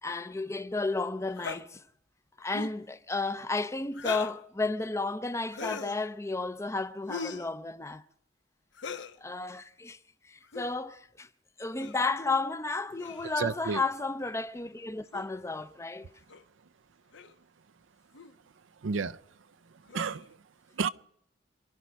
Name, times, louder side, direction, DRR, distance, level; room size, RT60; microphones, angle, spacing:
voice 1, 0.0-1.8 2.4-8.0 9.2-10.0 10.2-11.3 11.6-16.1, left 3 dB, 15° left, 0.6 m, -33 dB
sound 1, 1.4-1.6 2.5-2.8 3.9-4.4 5.5-6.0 7.1-7.5 8.7-9.1 10.4-10.7 11.8-12.0 13.0-13.5 15.1-15.3 16.3-16.4 17.1-17.3 18.1-18.3 19.9-20.3, left 5 dB, 70° left, 0.9 m, -39 dB
voice 2, 13.4-13.8 18.8-19.2 19.9-20.4 20.8-20.9, right 5 dB, 85° right, 0.6 m, -31 dB
27.5 x 11.5 x 4.6 m
head